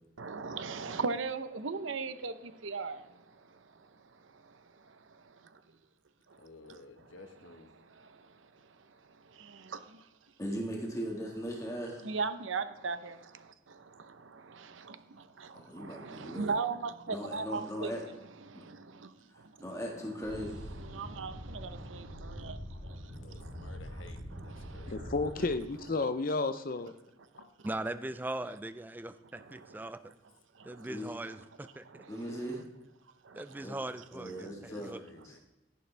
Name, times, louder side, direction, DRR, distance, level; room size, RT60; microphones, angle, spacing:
voice 1, 0.2-5.6 6.3-6.8 7.7-10.1 12.0-17.9 20.3-20.4 20.7-24.0 24.3-25.5 27.3-27.5 29.3-29.9 30.5-31.0 31.8-32.3 33.2-33.4, right 4 dB, 85° right, 0.8 m, -40 dB
voice 2, 6.4-7.7 23.0-25.0 34.2-35.4, left 3 dB, 90° left, 1.2 m, -53 dB
voice 3, 10.4-12.1 15.6-16.5 17.1-18.0 19.6-20.7 30.9-31.1 32.1-32.6 33.6-33.7 34.1-34.9 35.3-35.4, equal, 15° left, 1.7 m, -38 dB
sound 1, 20.2-25.5, equal, 50° right, 3.5 m, -44 dB
voice 4, 24.9-26.9, left 3 dB, 45° left, 0.6 m, -32 dB
voice 5, 27.6-30.0 30.6-32.0 33.3-35.0, right 1 dB, 10° right, 0.4 m, -40 dB
11.5 x 11.0 x 3.4 m
head